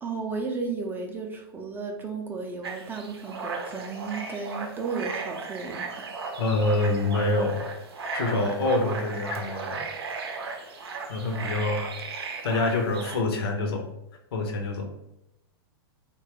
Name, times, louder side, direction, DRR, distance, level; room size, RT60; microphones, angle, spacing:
voice 1, 0.0-6.1, right 4 dB, 15° right, 2 dB, 0.5 m, -34 dB
sound 1, 2.6-13.2, right 4 dB, 80° right, 0.6 m, -36 dB
voice 2, 6.4-7.7 8.1-9.9 11.1-11.9 12.4-13.9 14.3-14.9, left 2 dB, 70° left, 3 dB, 0.7 m, -26 dB
3.1 x 2.3 x 3.0 m, 0.85 s
hypercardioid pair, 115°, 13 cm